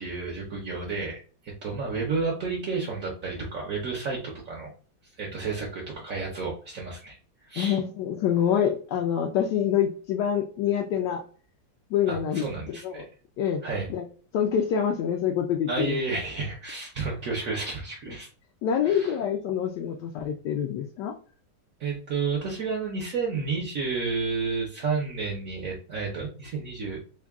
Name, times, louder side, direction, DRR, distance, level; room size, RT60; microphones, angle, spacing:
voice 1, 0.0-4.2 4.4-4.7 5.2-7.2 7.5-7.8 12.1-13.1 13.6-13.9 15.7-18.3 18.8-19.1 21.8-27.0, right 4 dB, 60° right, -2 dB, 1.0 m, -31 dB
voice 2, 7.6-11.2 11.9-13.1 13.4-13.6 13.9-14.0 14.3-16.0 18.6-21.1, left 8 dB, 75° left, 1 dB, 1.1 m, -26 dB
3.6 x 2.3 x 3.4 m, 0.41 s
omnidirectional pair, 2.0 m